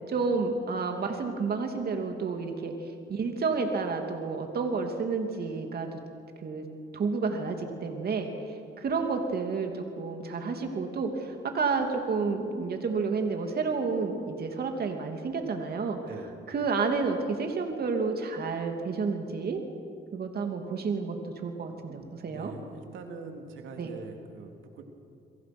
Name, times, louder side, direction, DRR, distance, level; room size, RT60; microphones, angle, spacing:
voice 1, 0.1-2.7 3.1-6.0 6.4-6.6 6.9-16.0 16.5-19.6 20.1-22.5 23.8-23.9, right 4 dB, 50° right, 4 dB, 2.8 m, -30 dB
voice 2, 21.6-24.8, right 4 dB, 80° right, 3 dB, 3.0 m, -44 dB
29.0 x 23.5 x 6.2 m, 2.4 s
cardioid pair, 90°, 20 cm